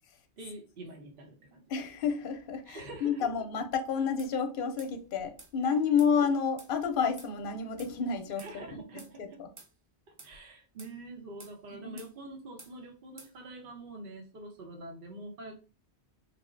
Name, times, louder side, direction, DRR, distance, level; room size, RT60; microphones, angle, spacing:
voice 1, 0.4-1.6 2.7-3.3 8.4-9.4 10.2-15.6, right 2 dB, 60° right, 0.9 m, -45 dB
voice 2, 1.7-8.8 9.2-9.5 11.8-12.0, left 6 dB, 60° left, 0.7 m, -30 dB
sound 1, 4.2-4.3 4.8-4.9 5.4-5.5 6.0-6.1 6.6-6.7 7.2-7.3 7.8-7.9 8.4-8.5 9.0-9.1 9.6-9.7 10.2-10.3 10.8-10.9 11.4-11.6 12.0-12.1 12.6-12.7 13.2-13.3, right 3 dB, 35° right, 0.6 m, -51 dB
3.2 x 2.1 x 3.7 m
omnidirectional pair, 1.1 m